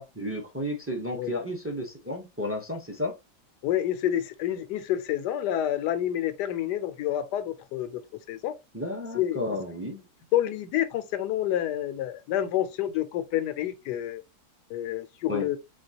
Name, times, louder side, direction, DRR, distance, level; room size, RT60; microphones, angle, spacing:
voice 1, 0.0-3.1 8.7-10.0 15.3-15.5, left 1 dB, 15° right, 0.4 m, -32 dB
voice 2, 3.6-8.0 8.3-8.6 9.1-9.6 10.3-14.2 14.7-15.6, left 11 dB, 90° left, 1.2 m, -28 dB
4.4 x 3.4 x 2.7 m
omnidirectional pair, 1.7 m